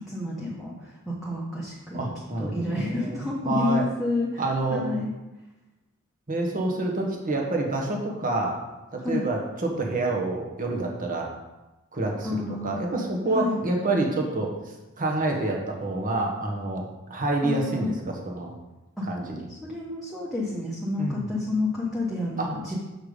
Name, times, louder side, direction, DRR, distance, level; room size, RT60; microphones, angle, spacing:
voice 1, 0.1-2.1 2.4-4.4 4.7-5.1 9.0-9.2 12.2-12.8 13.3-13.6 17.4-17.9 19.0-19.1 19.5-22.8, left 2 dB, ahead, -6 dB, 1.1 m, -29 dB
voice 2, 1.9-3.8 4.4-4.8 6.3-8.6 8.9-11.3 11.9-18.5 19.1-19.4 20.9-21.3 22.4-22.5, right 2 dB, 40° right, 0 dB, 1.4 m, -28 dB
6.8 x 5.9 x 5.1 m, 1.0 s
head